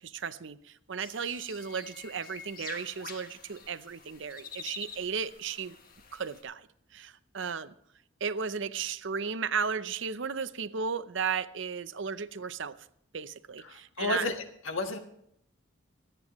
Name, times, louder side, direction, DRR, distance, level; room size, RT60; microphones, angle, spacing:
voice 1, 0.0-5.8 6.1-6.7 6.9-7.7 8.2-12.7 13.1-14.2, right 6 dB, 65° right, 0.6 m, -35 dB
sound 1, 1.0-6.4, left 6 dB, 45° left, 1.4 m, -47 dB
voice 2, 13.6-14.3 14.6-15.0, left 2 dB, 75° left, 1.6 m, -31 dB
25.0 x 9.1 x 3.1 m
head